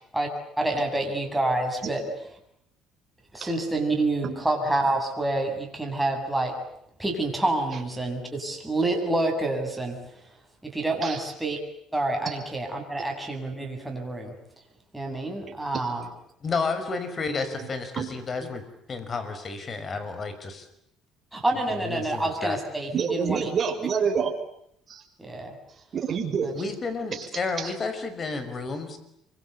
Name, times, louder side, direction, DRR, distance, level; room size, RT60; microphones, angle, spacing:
voice 1, 0.6-2.0 3.3-6.6 7.0-10.0 10.6-11.6 11.9-14.3 14.9-16.1 21.3-23.5 25.2-25.6 26.4-26.5, right 2 dB, 5° right, 1 dB, 8.0 m, -27 dB
voice 2, 16.4-18.6 18.9-20.7 21.8-22.6 26.5-29.0, left 4 dB, 35° left, 10 dB, 5.5 m, -31 dB
voice 3, 22.9-24.3 24.9-25.0 25.9-26.5 27.1-27.3 27.6-27.7, right 6 dB, 40° right, 2 dB, 6.0 m, -27 dB
27.5 x 24.5 x 8.4 m, 0.74 s
cardioid pair, 105°, 0 cm